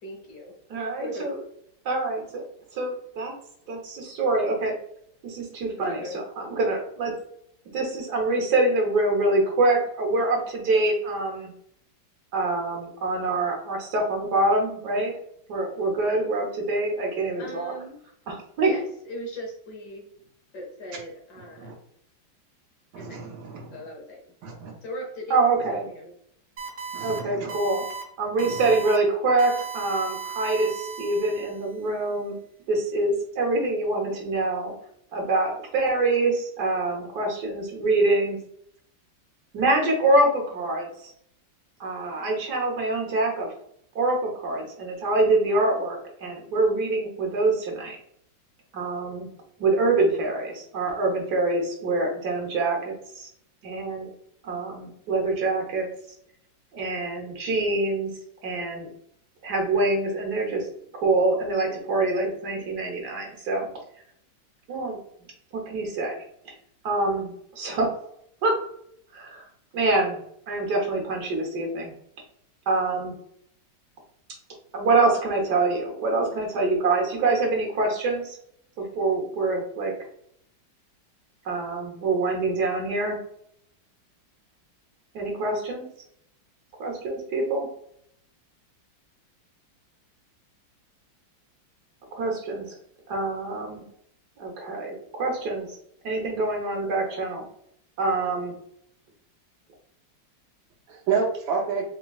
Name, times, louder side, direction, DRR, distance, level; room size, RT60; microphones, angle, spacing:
voice 1, 0.0-0.5 1.0-1.3 5.7-6.2 17.4-18.0 18.6-20.0 20.5-21.7 22.9-23.3 23.7-24.2 24.8-25.4 25.8-26.1, equal, 65° left, 0 dB, 1.5 m, -38 dB
voice 2, 0.7-1.4 1.8-2.4 2.7-3.3 3.7-4.7 5.2-6.0 6.4-7.1 7.7-11.5 12.3-15.1 15.5-17.7 18.3-18.7 25.3-25.9 27.0-27.8 28.2-32.4 32.7-34.7 35.1-38.4 39.5-40.9 41.8-43.5 43.9-48.0 48.7-49.3 49.6-53.3 53.6-54.1 54.4-55.9 56.7-58.1 58.4-58.9 59.4-60.7 60.9-63.7 64.7-65.0 65.5-66.1 66.8-67.9 68.4-68.5 69.1-69.4 69.7-71.9 72.7-73.2 74.7-78.4 78.8-79.9 81.4-83.2 85.1-85.9 86.8-87.7 92.1-92.8 93.1-93.9 94.4-95.7 96.0-97.4 98.0-98.5, right 2 dB, 60° right, 0 dB, 1.5 m, -25 dB
voice 3, 22.9-23.8 24.4-24.7 26.9-27.5 28.4-28.6 100.9-101.8, right 5 dB, 90° right, -1 dB, 1.6 m, -29 dB
sound 1, 26.6-27.2 27.5-28.0 28.4-29.0 29.4-31.7, right 6 dB, 40° right, 0.8 m, -36 dB
3.9 x 3.7 x 2.3 m, 0.70 s
omnidirectional pair, 2.0 m